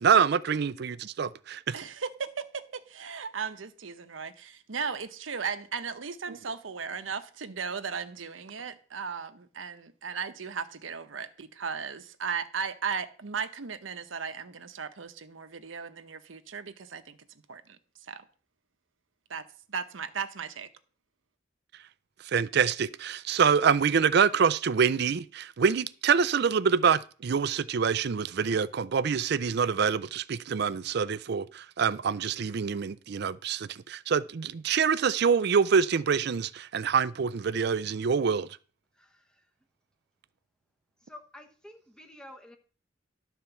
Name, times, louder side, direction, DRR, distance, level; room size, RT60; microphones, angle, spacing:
voice 1, 0.0-1.7 22.3-38.5, right 6 dB, 55° right, 0.4 m, -26 dB
voice 2, 1.7-17.2 17.5-18.3 19.3-19.4 19.7-20.7, right 6 dB, 90° right, 0.9 m, -36 dB
voice 3, 39.0-39.4 41.0-42.6, left 1 dB, 5° left, 1.1 m, -50 dB
11.5 x 4.4 x 6.9 m
head